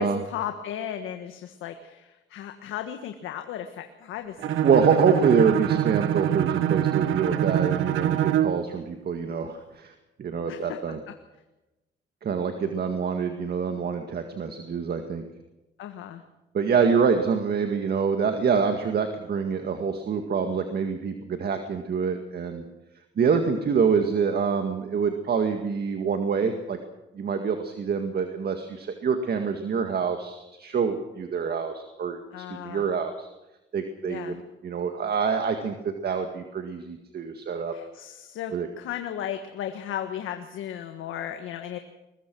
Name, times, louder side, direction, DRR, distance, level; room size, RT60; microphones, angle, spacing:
voice 1, 0.0-4.6 10.5-10.8 15.8-16.2 32.3-32.8 34.1-34.4 37.7-41.8, left 9 dB, 85° left, 6 dB, 1.5 m, -35 dB
Bowed string instrument, 4.4-8.6, right 11 dB, 80° right, 1.2 m, -25 dB
voice 2, 4.6-9.9 10.2-11.0 12.2-15.2 16.5-22.6 23.2-26.8 27.1-33.3 33.7-37.7 38.5-38.7, right 6 dB, 55° right, 6 dB, 2.0 m, -26 dB
21.5 x 21.5 x 6.3 m, 1.0 s
cardioid pair, 90°, 20 cm